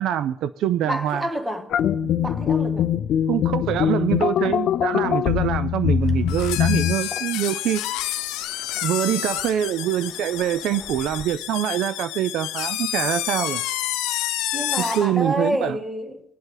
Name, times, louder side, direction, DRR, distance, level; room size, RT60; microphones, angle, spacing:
voice 1, 0.0-1.2 2.0-2.2 3.3-7.8 8.8-13.6 14.8-15.8, right 11 dB, 60° right, 0.4 m, -24 dB
voice 2, 0.9-1.7 2.2-2.9 14.5-16.2, right 1 dB, 10° right, 1.2 m, -28 dB
sound 1, 1.7-6.9, left 9 dB, 50° left, 0.5 m, -22 dB
Waves surf, 6.0-11.2, left 3 dB, 20° left, 0.8 m, -46 dB
sound 2, 6.3-15.1, left 14 dB, 80° left, 0.8 m, -29 dB
21.0 x 8.0 x 3.9 m
cardioid pair, 140°, 0 cm